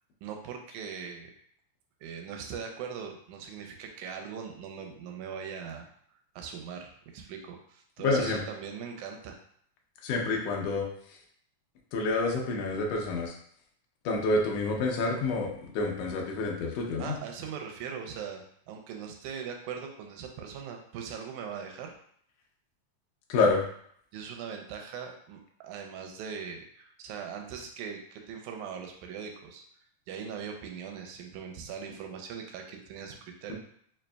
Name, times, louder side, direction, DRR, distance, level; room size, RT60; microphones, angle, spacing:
voice 1, 0.2-1.3 2.0-5.9 6.4-9.4 17.0-21.9 24.1-29.6 30.1-33.5, right 7 dB, 80° right, 3 dB, 1.8 m, -40 dB
voice 2, 8.0-8.4 10.0-10.9 11.9-13.3 14.0-17.2 23.3-23.6, left 3 dB, 90° left, 0 dB, 1.4 m, -28 dB
5.1 x 2.7 x 2.2 m, 0.64 s
omnidirectional pair, 3.7 m